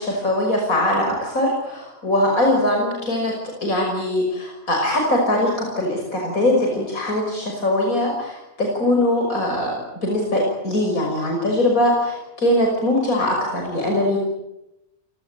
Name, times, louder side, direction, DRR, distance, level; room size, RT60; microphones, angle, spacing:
voice 1, 0.0-14.3, left 1 dB, 85° left, 0 dB, 6.3 m, -21 dB
28.5 x 18.5 x 9.2 m, 0.89 s
omnidirectional pair, 1.4 m